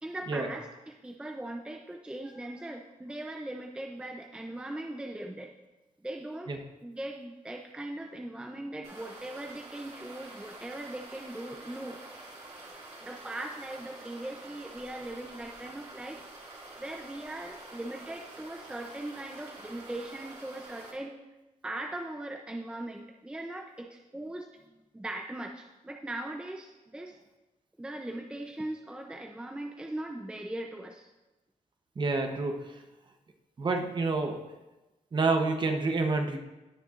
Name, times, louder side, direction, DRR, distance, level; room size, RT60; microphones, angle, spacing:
voice 1, 0.0-5.5 6.0-12.2 13.0-16.2 16.8-21.1 21.6-27.2 27.8-31.1, right 1 dB, 5° right, 2 dB, 0.5 m, -40 dB
sound 1, 8.8-20.9, right 2 dB, 55° right, 2.3 m, -48 dB
voice 2, 32.0-32.8 33.6-34.4 35.1-36.4, right 3 dB, 35° right, 4 dB, 0.9 m, -28 dB
17.0 x 6.6 x 2.5 m, 1.1 s
wide cardioid pair, 155°, 14 cm